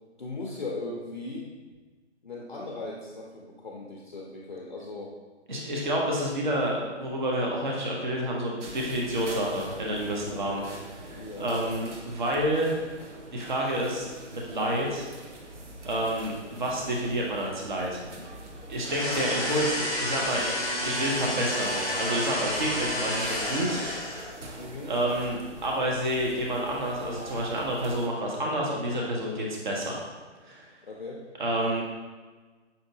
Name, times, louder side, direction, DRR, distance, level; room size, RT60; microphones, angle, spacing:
voice 1, 0.2-1.5 2.2-5.1 11.1-11.8 24.6-24.9 30.8-31.2, left 2 dB, 45° left, -2 dB, 0.4 m, -38 dB
voice 2, 5.5-12.7 13.3-15.1 15.8-18.2 18.7-20.5 20.8-23.8 24.9-30.0 30.4-30.7 31.4-31.8, right 1 dB, 40° right, -2 dB, 0.6 m, -29 dB
sound 1, 8.6-28.1, right 1 dB, 80° right, 0.8 m, -44 dB
sound 2, 18.8-24.4, left 1 dB, 20° right, 0.9 m, -30 dB
5.3 x 2.7 x 2.6 m, 1.3 s
hypercardioid pair, 175°, 36 cm